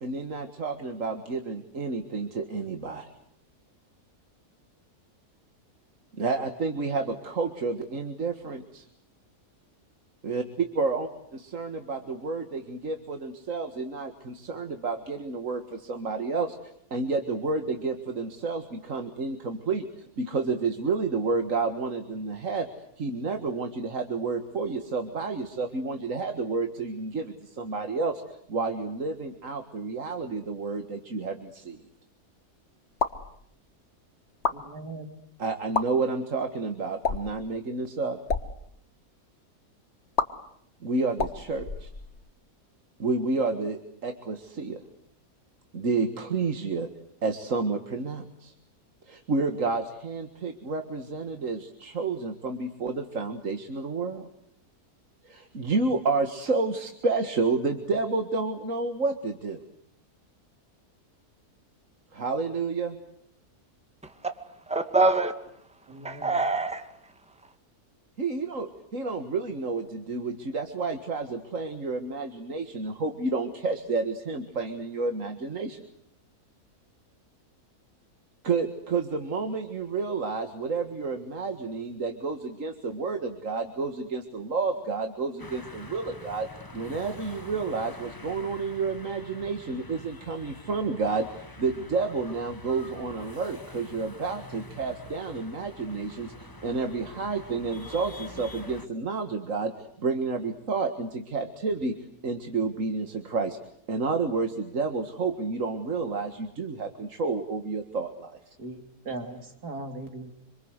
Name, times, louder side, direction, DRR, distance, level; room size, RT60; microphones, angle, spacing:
voice 1, 0.0-3.0 6.1-8.9 10.2-11.1 11.3-16.6 16.9-22.7 23.0-28.2 28.5-31.8 35.4-38.2 40.8-41.9 43.0-44.8 45.7-46.9 47.2-48.5 49.1-54.3 55.2-59.6 62.1-63.0 68.2-75.8 78.4-86.5 86.7-99.7 100.0-101.9 102.2-103.6 103.9-108.3, right 4 dB, 55° right, 2.1 m, -30 dB
sound 1, 32.9-33.3 34.3-34.6 35.6-35.9 37.0-37.4 38.2-38.5 40.2-40.3 41.1-42.3, left 4 dB, 45° left, 1.8 m, -29 dB
voice 2, 34.5-35.2 65.9-66.3 108.6-110.3, right 2 dB, 80° right, 3.8 m, -39 dB
voice 3, 64.7-65.6 65.9-67.1, right 2 dB, 5° right, 2.1 m, -26 dB
sound 2, 85.4-98.9, left 2 dB, 15° left, 1.3 m, -46 dB
27.0 x 26.0 x 8.1 m
omnidirectional pair, 1.7 m